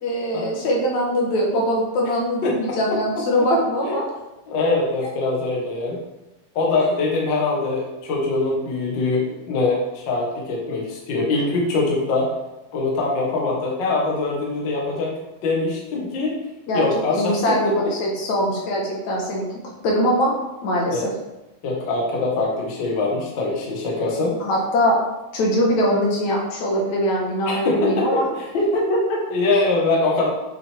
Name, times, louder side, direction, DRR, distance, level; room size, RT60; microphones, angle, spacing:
voice 1, 0.0-4.1 16.7-19.5 19.8-20.3 20.6-21.1 24.4-25.0 25.3-28.2 28.5-29.2 29.5-29.6, equal, 65° left, -2 dB, 2.5 m, -22 dB
voice 2, 2.4-3.0 4.5-6.0 6.5-12.3 12.7-15.1 15.4-16.3 16.7-17.9 20.9-21.1 21.6-24.4 27.4-28.4 29.3-30.3, left 3 dB, 45° left, -2 dB, 1.6 m, -23 dB
8.8 x 5.8 x 3.5 m, 0.99 s
omnidirectional pair, 3.7 m